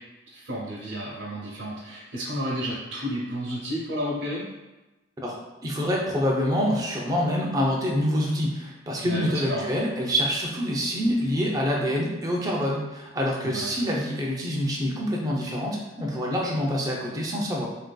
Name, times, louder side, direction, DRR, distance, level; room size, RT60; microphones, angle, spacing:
voice 1, 0.3-4.5 9.0-9.7 13.4-13.7, equal, 70° right, -7 dB, 0.7 m, -31 dB
voice 2, 5.2-17.7, equal, 20° right, -2 dB, 0.5 m, -26 dB
3.5 x 2.6 x 2.2 m, 1.1 s
head